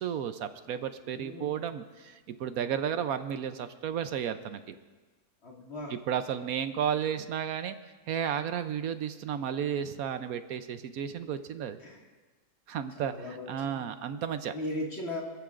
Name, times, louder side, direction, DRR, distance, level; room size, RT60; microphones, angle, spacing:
voice 1, 0.0-4.7 6.1-7.8 8.1-11.8 12.7-13.1 13.5-14.5, right 8 dB, 75° right, 10 dB, 1.1 m, -33 dB
voice 2, 1.0-1.5 5.4-6.0 11.8-12.1 12.9-13.9 14.5-15.2, left 1 dB, 45° left, -2 dB, 2.3 m, -38 dB
25.0 x 14.0 x 2.5 m, 1.3 s
omnidirectional pair, 1.6 m